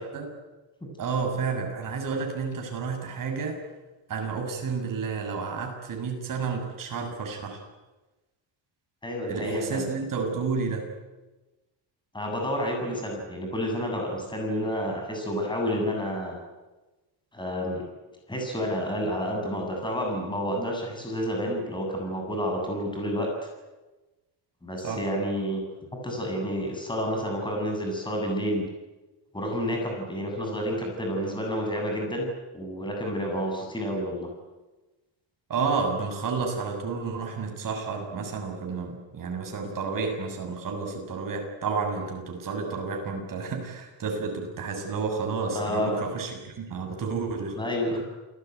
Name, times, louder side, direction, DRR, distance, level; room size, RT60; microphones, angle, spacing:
voice 1, 1.0-3.6 4.1-7.6 9.3-10.8 24.8-25.0 35.5-47.6, right 5 dB, 45° right, 3 dB, 7.3 m, -31 dB
voice 2, 9.0-9.8 12.1-16.4 17.3-17.8 18.3-23.5 24.6-25.6 26.0-28.7 29.3-34.3 45.5-46.0 47.5-48.0, equal, 10° left, 1 dB, 7.8 m, -29 dB
28.5 x 19.5 x 9.5 m, 1.1 s
cardioid pair, 150°, 44 cm